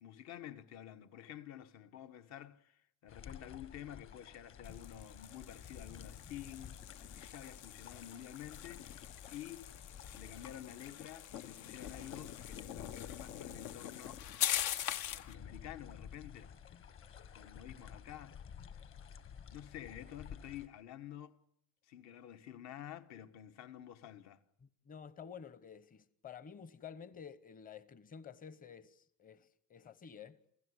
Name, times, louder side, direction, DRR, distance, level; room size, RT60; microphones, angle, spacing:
voice 1, 0.0-6.8 7.1-9.7 10.1-14.2 15.1-16.5 17.3-18.4 18.7-18.8 19.5-21.4 21.8-24.4, left 11 dB, 65° left, 1.4 m, -50 dB
small waves, 3.1-20.7, left 7 dB, 45° left, 1.7 m, -53 dB
sound 1, 4.6-15.3, left 11 dB, 80° left, 1.3 m, -43 dB
voice 2, 24.6-30.4, left 7 dB, 30° left, 1.0 m, -51 dB
29.0 x 16.0 x 9.6 m
cardioid pair, 160°, 30 cm